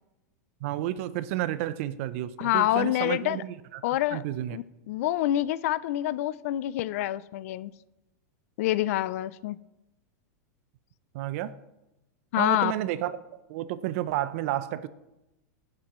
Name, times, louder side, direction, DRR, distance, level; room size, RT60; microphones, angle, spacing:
voice 1, 0.6-3.8 4.1-4.6 11.1-11.5 12.4-13.2 13.5-14.9, right 13 dB, 50° right, 15 dB, 0.6 m, -31 dB
voice 2, 2.4-3.4 3.8-4.2 4.5-7.7 8.6-9.6 12.3-12.7, left 14 dB, 55° left, 18 dB, 0.4 m, -27 dB
16.0 x 7.4 x 3.1 m, 0.95 s
supercardioid pair, 155°, 9 cm